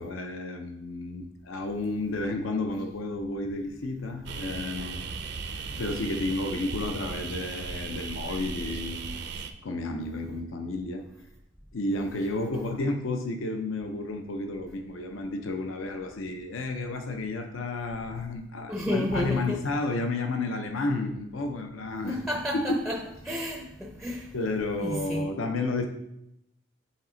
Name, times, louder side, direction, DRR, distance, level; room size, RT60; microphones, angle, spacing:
voice 1, 0.0-5.1 5.7-11.0 11.7-22.2 22.5-22.8 24.3-25.9, left 2 dB, 80° left, 0.6 m, -31 dB
sound 1, 4.3-9.5, right 5 dB, 55° right, 0.4 m, -36 dB
voice 2, 18.7-19.6 22.0-24.3 24.8-25.3, left 1 dB, ahead, 0.4 m, -31 dB
7.2 x 4.1 x 3.8 m
head